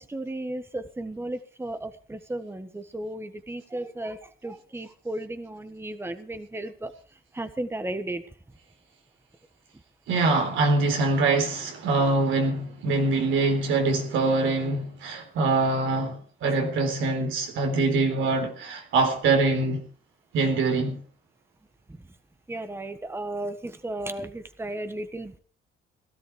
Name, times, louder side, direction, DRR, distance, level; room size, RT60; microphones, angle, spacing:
voice 1, 0.0-6.9 7.3-8.2 22.5-25.4, right 1 dB, 10° right, 1.4 m, -34 dB
voice 2, 10.1-19.9 20.3-21.0, right 3 dB, 80° right, 4.0 m, -24 dB
17.5 x 12.5 x 4.8 m
cardioid pair, 90°, 20 cm